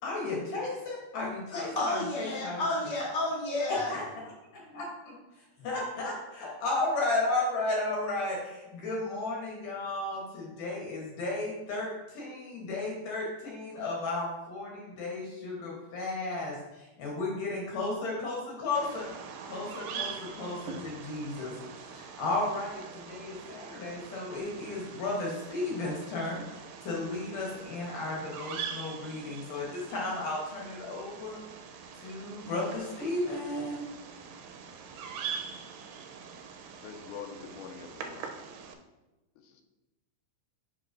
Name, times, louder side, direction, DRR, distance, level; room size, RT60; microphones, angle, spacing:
voice 1, 0.0-2.6 3.7-4.2 4.5-19.1 19.4-31.4 31.9-33.8, left 2 dB, 70° left, -3 dB, 2.1 m, -34 dB
voice 2, 1.5-3.9, left 2 dB, 25° left, -7 dB, 1.2 m, -31 dB
Bird vocalization bird call bird song, 18.7-38.7, right 6 dB, 80° right, 2.6 m, -43 dB
voice 3, 36.8-38.4 39.4-39.6, left 6 dB, 90° left, 5 dB, 2.9 m, -44 dB
7.5 x 5.9 x 2.5 m, 1.1 s
omnidirectional pair, 5.1 m